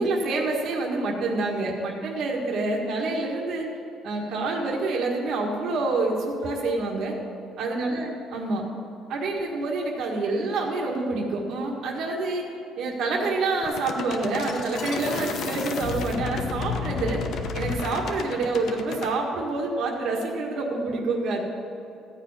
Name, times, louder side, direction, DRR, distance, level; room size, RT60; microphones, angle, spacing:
voice 1, 0.0-3.7 4.0-7.2 7.6-8.6 9.1-12.5 12.8-17.2 17.5-21.4, right 3 dB, 65° right, -1 dB, 1.7 m, -27 dB
sound 1, 13.6-19.1, left 5 dB, 60° left, 0.9 m, -31 dB
14.5 x 4.9 x 8.9 m, 2.9 s
cardioid pair, 135°, 0 cm